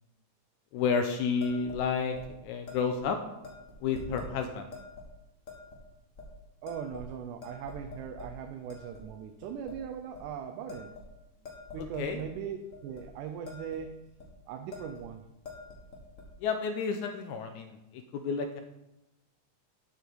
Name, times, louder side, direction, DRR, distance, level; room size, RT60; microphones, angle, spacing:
voice 1, 0.7-2.2 2.4-3.2 3.8-4.7 11.8-12.2 16.4-18.6, left 5 dB, 80° left, 6 dB, 2.0 m, -31 dB
sound 1, 1.4-1.8 2.1-2.3 2.7-3.0 3.4-4.3 4.7-5.1 5.5-5.8 6.2-6.3 6.7-7.1 7.4-8.3 8.7-9.0 9.4-9.8 10.1-10.3 10.7-12.3 12.7-13.0 13.3-13.8 14.1-14.3 14.7-15.1 15.3-16.3, left 3 dB, 35° left, 1.5 m, -46 dB
voice 2, 6.6-11.0 11.7-14.0 14.5-15.2, right 8 dB, 90° right, 6 dB, 2.2 m, -39 dB
11.5 x 7.1 x 4.6 m, 0.94 s
omnidirectional pair, 3.6 m